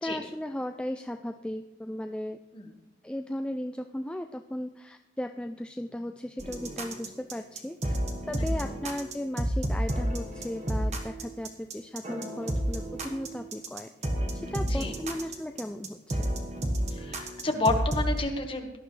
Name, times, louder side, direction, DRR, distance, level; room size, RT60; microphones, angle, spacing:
voice 1, 0.0-2.4 3.0-8.0 8.3-13.9 14.3-16.4, left 1 dB, 5° left, 6 dB, 0.3 m, -36 dB
sound 1, 6.4-18.2, right 1 dB, 40° right, 1.5 m, -31 dB
voice 2, 16.9-18.7, left 2 dB, 30° left, 3 dB, 1.5 m, -30 dB
17.5 x 12.0 x 3.3 m, 0.94 s
head